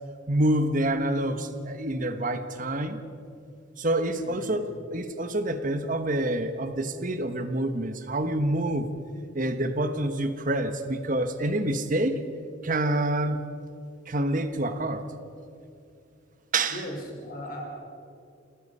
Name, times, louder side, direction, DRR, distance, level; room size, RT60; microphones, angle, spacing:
voice 1, 0.3-3.0 3.8-8.9 9.3-12.2 12.6-13.4 14.1-15.1 16.5-16.9, right 1 dB, 45° right, 9 dB, 1.3 m, -27 dB
voice 2, 4.2-4.6 16.7-17.6, equal, 50° left, 1 dB, 5.2 m, -38 dB
29.5 x 17.5 x 5.6 m, 2.5 s
head